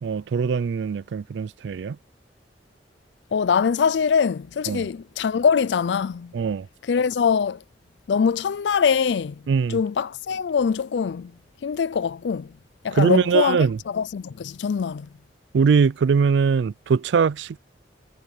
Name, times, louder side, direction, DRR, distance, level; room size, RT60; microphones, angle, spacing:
voice 1, 0.0-2.0 4.7-4.9 6.3-6.7 9.5-9.8 13.0-13.8 15.5-17.6, right 5 dB, 85° right, 0.4 m, -21 dB
voice 2, 3.3-6.3 6.9-7.6 8.1-9.4 9.7-11.3 11.6-12.5 12.8-15.1, left 6 dB, 80° left, 0.4 m, -23 dB
head